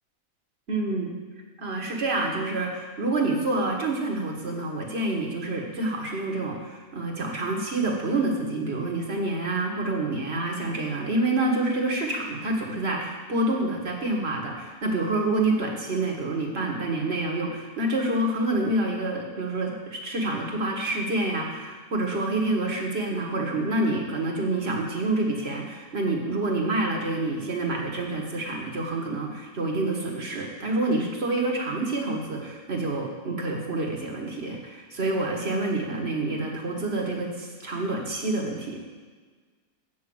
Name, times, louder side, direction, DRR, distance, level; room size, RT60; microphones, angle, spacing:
voice 1, 0.7-1.2 1.6-38.8, right 2 dB, 45° right, 0 dB, 1.7 m, -27 dB
8.4 x 6.3 x 7.8 m, 1.4 s
omnidirectional pair, 1.5 m